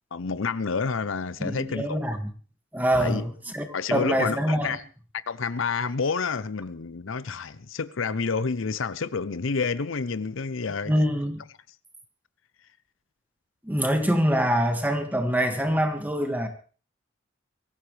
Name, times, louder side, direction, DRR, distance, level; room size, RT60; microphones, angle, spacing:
voice 1, 0.1-2.0 3.0-3.2 3.7-4.8 5.3-10.9, left 5 dB, 80° left, 0.7 m, -29 dB
voice 2, 1.4-2.2 2.7-4.8 10.9-11.4 13.6-16.5, equal, 10° right, 2.0 m, -25 dB
23.5 x 14.5 x 3.4 m
head